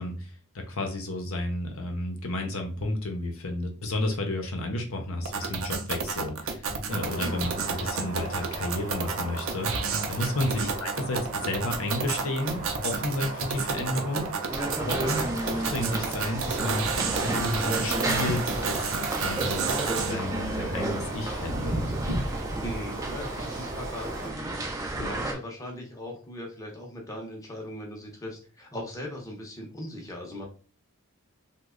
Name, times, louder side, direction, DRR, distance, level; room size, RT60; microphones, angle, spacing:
voice 1, 0.0-16.9 17.2-22.0, left 1 dB, 70° left, 4 dB, 0.7 m, -32 dB
sound 1, 5.2-20.1, right 5 dB, 60° right, 0.6 m, -31 dB
sound 2, 6.9-24.3, right 2 dB, 35° right, 0.9 m, -37 dB
voice 2, 7.2-7.5 10.5-10.7 15.0-15.2 22.6-30.4, left 1 dB, 15° left, -1 dB, 0.7 m, -39 dB
sound 3, 14.5-25.3, right 2 dB, 15° right, 0.4 m, -32 dB
3.1 x 2.2 x 3.6 m, 0.38 s
head